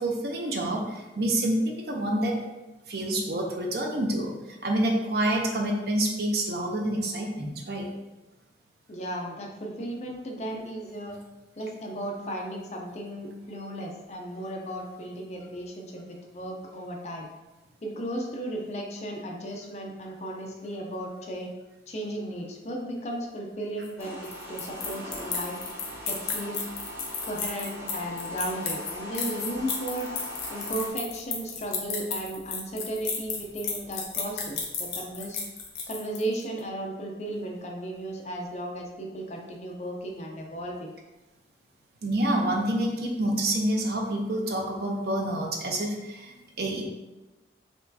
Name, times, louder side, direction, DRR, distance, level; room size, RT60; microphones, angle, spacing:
voice 1, 0.0-2.4 2.9-7.9 42.0-46.8, right 1 dB, 60° right, 1 dB, 0.6 m, -28 dB
voice 2, 8.9-11.2 11.6-17.3 17.8-21.5 21.9-25.6 26.1-26.7 27.2-30.1 30.5-35.5 35.9-40.9, right 1 dB, 40° left, 0 dB, 0.5 m, -35 dB
sound 1, 23.8-36.4, left 5 dB, 75° left, 0.8 m, -33 dB
sound 2, 24.0-30.9, left 1 dB, 15° right, 0.6 m, -40 dB
4.4 x 3.0 x 2.7 m, 1.1 s
head